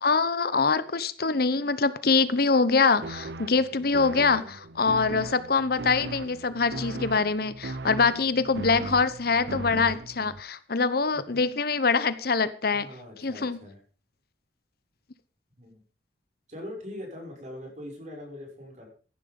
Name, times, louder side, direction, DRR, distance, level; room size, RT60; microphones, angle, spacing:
voice 1, 0.0-12.9 13.2-13.6, left 4 dB, 60° left, 14 dB, 1.0 m, -24 dB
sound 1, 3.0-10.4, right 2 dB, 65° right, 0.8 m, -38 dB
voice 2, 12.7-13.8 15.6-15.8 16.5-18.9, left 1 dB, 45° right, 1 dB, 6.3 m, -41 dB
15.5 x 11.0 x 5.3 m, 0.39 s
head